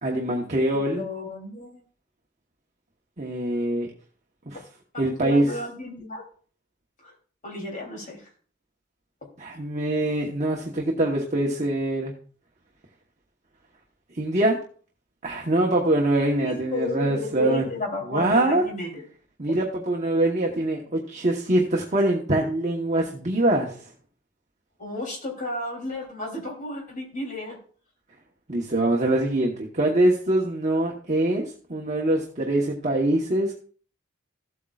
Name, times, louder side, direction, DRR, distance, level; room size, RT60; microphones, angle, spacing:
voice 1, 0.0-1.0 3.2-3.9 4.5-4.6 5.0-5.4 9.4-12.1 14.1-14.6 15.2-17.7 18.1-18.6 19.4-23.8 28.5-31.4 31.7-33.6, right 1 dB, 40° right, 0 dB, 1.1 m, -23 dB
voice 2, 1.0-1.8 4.9-6.2 7.0-7.1 7.4-8.3 16.4-19.0 24.8-27.6, left 2 dB, 45° left, 0 dB, 3.3 m, -33 dB
15.0 x 8.3 x 2.4 m, 0.44 s
head